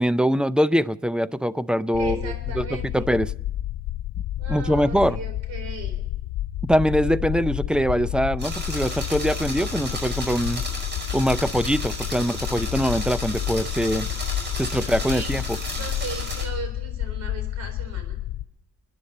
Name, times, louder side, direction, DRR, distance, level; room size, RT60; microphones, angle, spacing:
voice 1, 0.0-2.6 2.9-3.3 4.5-5.2 6.6-10.6 11.1-14.1 14.6-15.6, equal, 5° right, 0.5 m, -23 dB
sound 1, 1.9-18.5, left 13 dB, 65° left, 0.5 m, -30 dB
voice 2, 1.9-3.1 4.4-6.0 14.8-15.4 15.7-18.2, right 4 dB, 60° right, 4.1 m, -37 dB
sound 2, 8.4-16.4, right 1 dB, 35° right, 5.0 m, -34 dB
28.5 x 10.0 x 4.2 m
cardioid pair, 90°, 30 cm